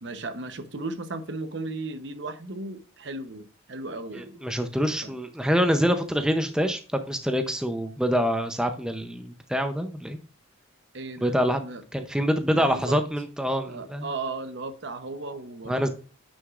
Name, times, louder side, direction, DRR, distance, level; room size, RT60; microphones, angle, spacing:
voice 1, 0.0-4.4 5.0-5.1 10.9-11.8 12.5-13.0 13.7-15.9, right 3 dB, 60° right, 0.8 m, -36 dB
voice 2, 4.1-6.8 7.1-10.2 11.2-11.6 11.9-14.1 15.7-15.9, equal, 5° right, 0.6 m, -25 dB
9.5 x 6.2 x 2.4 m
head